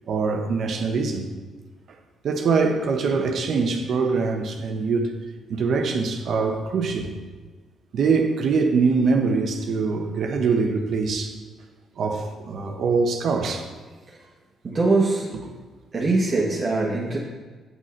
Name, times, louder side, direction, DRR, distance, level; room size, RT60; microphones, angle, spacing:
voice 1, 0.1-1.3 2.2-5.1 5.5-7.1 7.9-11.4 12.0-13.7, right 4 dB, 65° right, 0.9 m, -23 dB
voice 2, 14.6-15.3 15.9-17.2, right 3 dB, 40° right, 1.3 m, -22 dB
8.0 x 6.4 x 4.4 m
cardioid pair, 90°, 0 cm